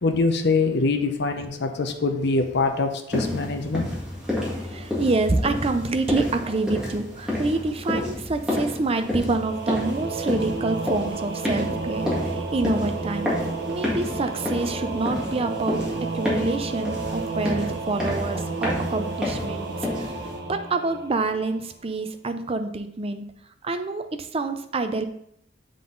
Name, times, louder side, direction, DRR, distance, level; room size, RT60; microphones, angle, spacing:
voice 1, 0.0-3.9, left 3 dB, 60° left, 6 dB, 0.7 m, -24 dB
sound 1, 3.1-20.4, left 1 dB, 5° right, 1.8 m, -30 dB
voice 2, 4.4-13.3 13.7-15.8 16.1-20.1 20.5-23.2 23.6-25.0, right 3 dB, 30° right, 8 dB, 0.5 m, -27 dB
Singing / Musical instrument, 9.2-21.7, right 4 dB, 60° right, 0.9 m, -32 dB
7.4 x 3.9 x 3.8 m, 0.70 s
head